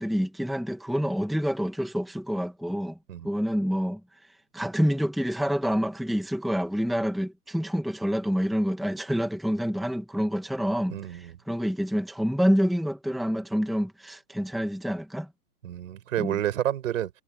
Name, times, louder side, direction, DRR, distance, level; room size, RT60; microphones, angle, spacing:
voice 1, 0.0-3.0 3.2-4.0 4.5-15.3 16.2-16.4, equal, ahead, 1.6 m, -27 dB
voice 2, 10.9-11.4 15.6-17.1, right 11 dB, 55° right, 6.1 m, -29 dB
hypercardioid pair, 140°, 47 cm